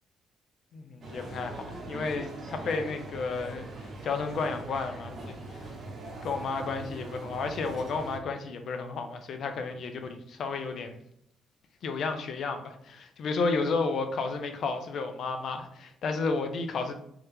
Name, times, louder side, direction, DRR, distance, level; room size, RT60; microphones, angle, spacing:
voice 1, 0.7-3.7 4.0-5.6 6.2-11.0 11.8-16.9, left 4 dB, 65° left, 6 dB, 0.6 m, -32 dB
sound 1, 1.0-8.2, right 2 dB, 55° right, 1.1 m, -41 dB
3.5 x 2.8 x 3.3 m, 0.71 s
cardioid pair, 90°, 0 cm